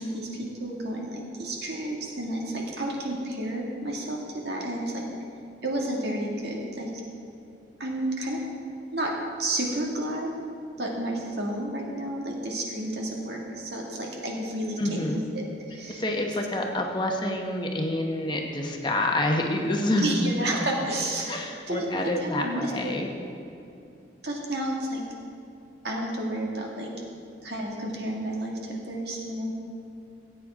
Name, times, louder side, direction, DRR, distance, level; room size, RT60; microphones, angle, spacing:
voice 1, 0.0-5.0 5.6-6.9 7.8-8.4 8.9-10.3 10.8-16.0 20.0-22.9 24.2-25.0 25.8-26.9 27.4-29.5, right 1 dB, 60° right, -1 dB, 2.0 m, -31 dB
voice 2, 14.8-15.2 15.9-20.2 21.3-23.1, left 1 dB, 25° left, 1 dB, 0.9 m, -27 dB
18.0 x 8.8 x 3.6 m, 2.7 s
head